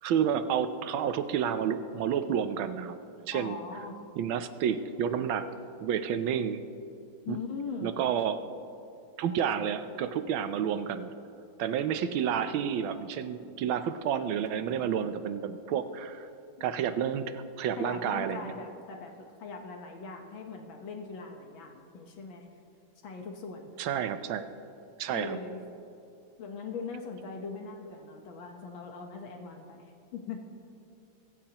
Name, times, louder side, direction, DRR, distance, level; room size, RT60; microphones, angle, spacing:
voice 1, 0.0-3.0 3.2-3.6 4.2-5.5 5.8-6.6 7.3-7.4 7.8-8.4 9.2-11.2 11.6-16.3 16.6-18.5 23.8-24.5 25.0-25.4, right 8 dB, 80° right, 10 dB, 1.5 m, -30 dB
voice 2, 3.3-4.0 7.3-8.0 17.8-19.1 19.4-22.5 23.0-23.7 25.1-25.6 26.4-30.5, left 5 dB, 75° left, 3 dB, 1.9 m, -40 dB
24.0 x 14.0 x 2.9 m, 2.7 s
omnidirectional pair, 2.2 m